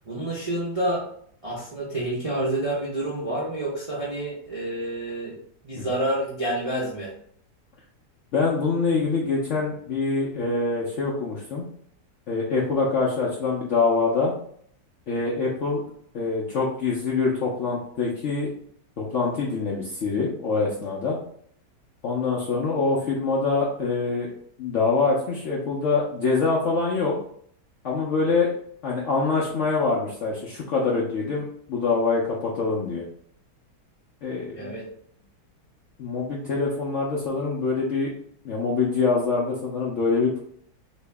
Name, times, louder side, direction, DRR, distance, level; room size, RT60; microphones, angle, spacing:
voice 1, 0.1-1.0 1.4-5.4 5.6-7.1 34.5-34.8, right 1 dB, 45° right, -7 dB, 0.4 m, -28 dB
voice 2, 8.3-11.6 12.3-14.3 15.1-15.8 16.1-18.5 19.0-21.2 22.0-24.3 24.6-27.1 27.8-28.5 28.8-33.0 34.2-34.7 36.0-38.1 38.4-40.4, left 4 dB, 65° left, -4 dB, 0.7 m, -25 dB
3.0 x 2.8 x 3.3 m, 0.64 s
omnidirectional pair, 1.9 m